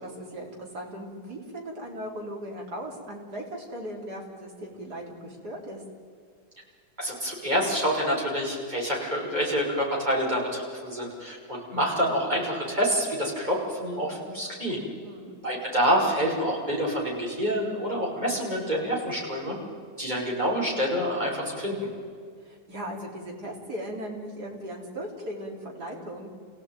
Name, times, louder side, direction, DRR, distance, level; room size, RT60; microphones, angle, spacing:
voice 1, 0.0-5.8 15.0-15.3 22.4-26.3, equal, 60° right, -1 dB, 4.6 m, -38 dB
voice 2, 7.0-14.8 15.4-19.6 20.0-21.9, equal, 25° right, -3 dB, 6.2 m, -27 dB
28.5 x 17.0 x 9.2 m, 2.1 s
omnidirectional pair, 1.9 m